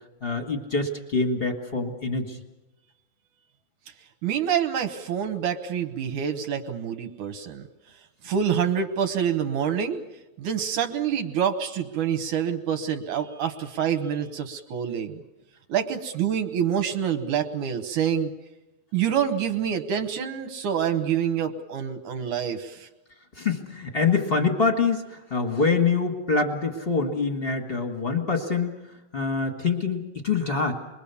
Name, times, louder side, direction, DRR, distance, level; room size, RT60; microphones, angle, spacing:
voice 1, 0.2-2.4 23.3-28.8 29.1-30.7, left 4 dB, 35° left, 4 dB, 0.9 m, -25 dB
voice 2, 4.2-7.6 8.2-10.0 10.4-15.2 15.7-18.3 18.9-22.9, right 8 dB, 65° right, 6 dB, 2.2 m, -26 dB
27.5 x 21.5 x 7.1 m, 1.0 s
omnidirectional pair, 4.3 m